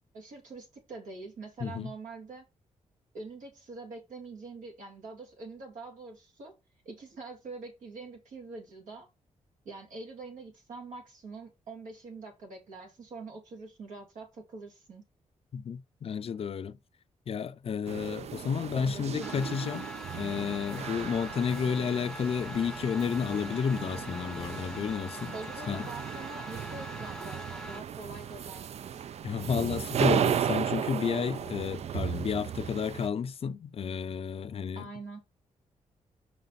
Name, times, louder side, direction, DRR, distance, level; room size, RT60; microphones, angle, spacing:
voice 1, 0.1-2.5 3.1-6.5 6.8-9.1 9.6-15.0 18.7-19.4 25.3-29.0 34.7-35.2, right 3 dB, 85° right, 2.5 m, -44 dB
voice 2, 1.6-1.9 15.5-16.8 17.3-19.9 20.1-25.3 25.7-25.9 29.2-34.8, left 7 dB, 50° left, 0.5 m, -31 dB
sound 1, 17.9-33.1, right 9 dB, 55° right, 0.4 m, -35 dB
sound 2, 19.2-27.8, equal, 5° left, 0.7 m, -43 dB
5.2 x 5.0 x 4.0 m
cardioid pair, 90°, 13 cm